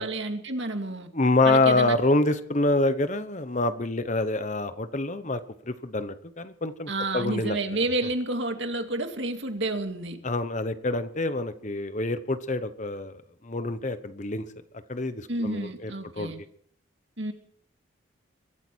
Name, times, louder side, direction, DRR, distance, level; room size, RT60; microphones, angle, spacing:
voice 1, 0.0-1.1 1.4-2.0 6.9-10.2 15.3-16.4 17.2-17.3, right 2 dB, 60° right, 5 dB, 2.3 m, -30 dB
voice 2, 1.1-5.4 5.7-7.6 10.2-13.1 13.4-14.4 14.9-16.3, left 2 dB, 35° left, 11 dB, 1.1 m, -26 dB
23.0 x 13.5 x 4.6 m, 0.64 s
head